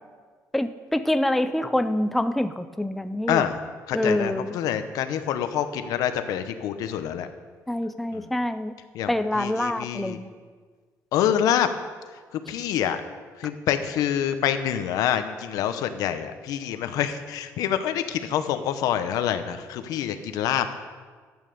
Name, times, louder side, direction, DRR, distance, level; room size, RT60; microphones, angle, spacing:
voice 1, 0.5-3.4 3.9-4.5 7.7-8.7 9.1-10.3, left 1 dB, ahead, 10 dB, 0.4 m, -26 dB
voice 2, 3.3-3.6 3.9-7.3 8.1-8.3 8.9-10.2 11.1-11.7 12.5-13.0 13.4-20.7, left 10 dB, 85° left, 9 dB, 1.0 m, -26 dB
12.5 x 9.1 x 6.8 m, 1.5 s
cardioid pair, 170°, 6 cm